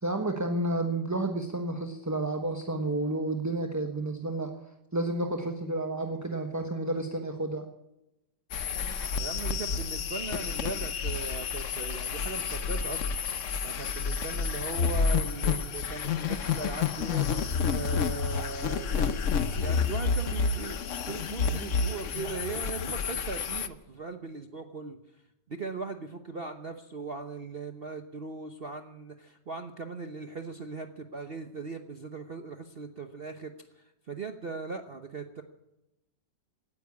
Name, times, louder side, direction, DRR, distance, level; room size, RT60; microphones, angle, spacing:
voice 1, 0.0-4.5 4.9-7.6, right 2 dB, 10° right, 3 dB, 0.9 m, -31 dB
sound 1, 8.5-23.7, left 5 dB, 55° left, 1.0 m, -30 dB
voice 2, 9.1-25.0 25.5-35.4, right 4 dB, 40° right, 6 dB, 0.9 m, -39 dB
17.0 x 10.0 x 8.4 m, 0.91 s
omnidirectional pair, 1.9 m